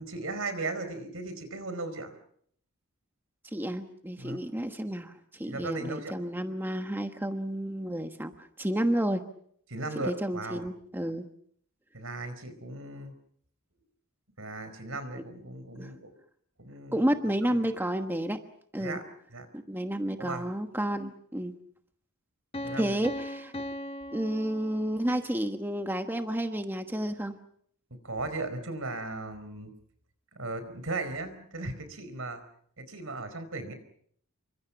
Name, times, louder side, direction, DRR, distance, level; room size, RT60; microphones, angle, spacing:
voice 1, 0.0-2.1 4.2-4.4 5.5-6.1 9.7-10.6 11.9-13.1 14.4-16.1 16.6-17.1 17.5-17.6 18.8-19.0 19.3-19.5 20.2-20.4 22.6-22.9 28.0-29.7 30.3-32.4 32.8-33.7, right 2 dB, 70° right, 11 dB, 4.7 m, -37 dB
voice 2, 3.5-9.2 10.0-11.2 15.8-15.9 16.9-18.4 18.7-19.0 19.5-21.5 22.8-23.5 24.1-27.4, right 1 dB, 10° right, 6 dB, 1.2 m, -31 dB
Piano, 22.5-25.3, left 1 dB, 25° left, 1.1 m, -39 dB
28.5 x 25.0 x 5.9 m, 0.65 s
head